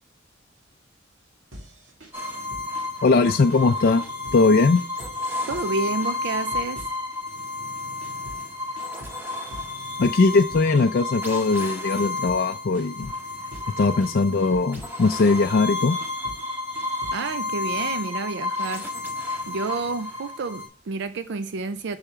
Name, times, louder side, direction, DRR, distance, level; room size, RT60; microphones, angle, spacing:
sound 1, 1.5-3.0 3.3-4.5 4.7-5.7 6.0-7.5 7.7-12.5 12.7-13.7 14.0-15.4 15.8-17.5, equal, 80° right, 2.2 m, -45 dB
sound 2, 2.1-20.7, left 2 dB, 10° right, 1.8 m, -31 dB
voice 1, 3.0-4.0 4.3-4.8 10.0-13.1 13.8-16.0, left 3 dB, 50° left, 0.4 m, -20 dB
voice 2, 5.5-6.9 17.1-18.9 19.5-22.0, right 3 dB, 60° right, 0.5 m, -29 dB
6.8 x 5.8 x 3.6 m
head